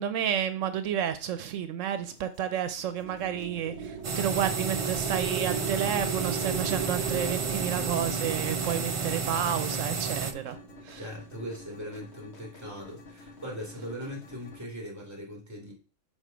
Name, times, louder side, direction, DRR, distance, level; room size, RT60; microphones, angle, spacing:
voice 1, 0.0-10.6 10.8-11.0, right 9 dB, 80° right, 1.0 m, -31 dB
sound 1, 2.0-14.6, left 3 dB, 60° left, 1.4 m, -51 dB
sound 2, 2.8-11.3, right 6 dB, 65° right, 1.2 m, -37 dB
sound 3, 4.0-10.3, right 5 dB, 40° right, 0.5 m, -31 dB
voice 2, 10.9-15.7, equal, 15° right, 2.2 m, -40 dB
6.4 x 3.9 x 5.0 m
omnidirectional pair, 1.3 m